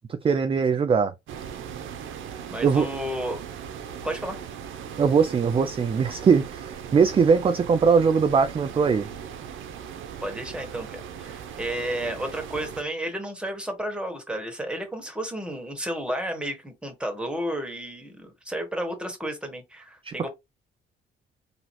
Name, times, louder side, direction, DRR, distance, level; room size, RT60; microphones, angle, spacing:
voice 1, 0.1-1.1 2.6-2.9 5.0-9.1 20.0-20.3, right 5 dB, 25° right, 0.4 m, -21 dB
sound 1, 1.3-12.8, right 8 dB, 80° right, 0.7 m, -39 dB
voice 2, 2.5-3.4 4.0-4.4 10.2-20.3, right 1 dB, 5° right, 1.6 m, -32 dB
3.9 x 2.9 x 2.8 m
cardioid pair, 90°, 20 cm